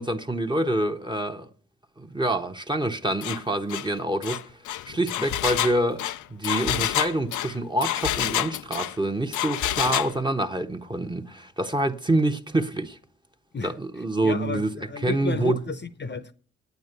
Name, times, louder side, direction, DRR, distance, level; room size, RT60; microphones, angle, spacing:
voice 1, 0.0-1.5 2.0-4.5 4.8-6.0 6.3-13.0 13.6-15.6, right 1 dB, 15° right, 1.1 m, -26 dB
Engine, 3.2-3.4 3.7-3.9 4.2-8.9 9.3-10.1, left 13 dB, 80° left, 0.5 m, -28 dB
voice 2, 14.2-14.6 14.9-16.3, left 3 dB, 35° left, 0.9 m, -32 dB
9.4 x 8.8 x 6.7 m
supercardioid pair, 50°, 30 cm